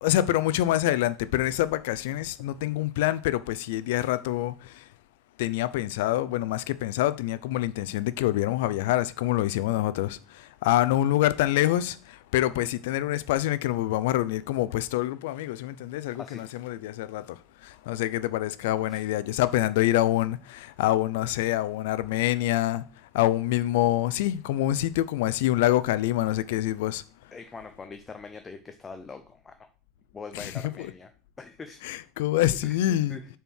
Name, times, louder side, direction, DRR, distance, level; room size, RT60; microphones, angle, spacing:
voice 1, 0.0-4.9 5.4-22.8 23.1-27.0 30.3-30.5 30.8-30.9 31.8-33.2, left 14 dB, 80° left, 0.5 m, -26 dB
voice 2, 27.3-29.7 30.1-31.1 31.4-31.8 32.4-33.2, left 4 dB, 15° left, 0.5 m, -43 dB
6.8 x 4.4 x 6.3 m
cardioid pair, 175°, 0 cm